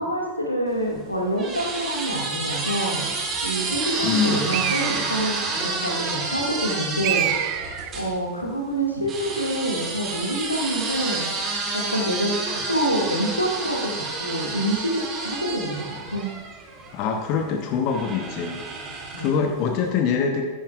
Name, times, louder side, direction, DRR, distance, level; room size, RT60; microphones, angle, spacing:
voice 1, 0.0-3.1 3.4-7.3 7.9-11.3 11.7-16.3 19.1-19.5, right 1 dB, 85° left, 0 dB, 1.9 m, -27 dB
sound 1, 0.7-8.1 9.1-17.0 17.9-19.5, right 3 dB, 25° right, 2.4 m, -30 dB
voice 2, 4.0-4.5 16.9-18.6 19.2-20.5, left 6 dB, 40° left, 4 dB, 0.9 m, -24 dB
Bird, 4.5-5.4 7.0-8.0, right 13 dB, 45° right, 0.5 m, -26 dB
14.5 x 10.0 x 2.4 m, 1.4 s
figure-of-eight pair, 90°, 0 cm